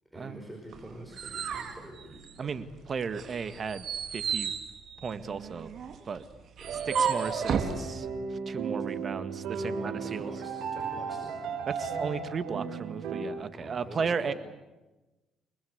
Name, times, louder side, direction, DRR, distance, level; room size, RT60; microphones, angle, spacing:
voice 1, 0.1-2.2 6.6-7.3 8.8-8.9 9.5-11.4 13.5-14.3, right 1 dB, 5° right, 2 dB, 5.1 m, -46 dB
sound 1, 0.7-2.7 3.1-7.8, right 7 dB, 55° right, 3.7 m, -33 dB
voice 2, 2.4-3.9 4.1-4.5 5.0-5.7 6.1-6.2 7.0-8.1 8.5-10.3 11.7-14.3, right 5 dB, 40° right, 12 dB, 1.8 m, -35 dB
sound 2, 6.6-13.2, right 5 dB, 80° right, 5.7 m, -35 dB
30.0 x 20.5 x 8.2 m, 1.1 s
cardioid pair, 105°, 0 cm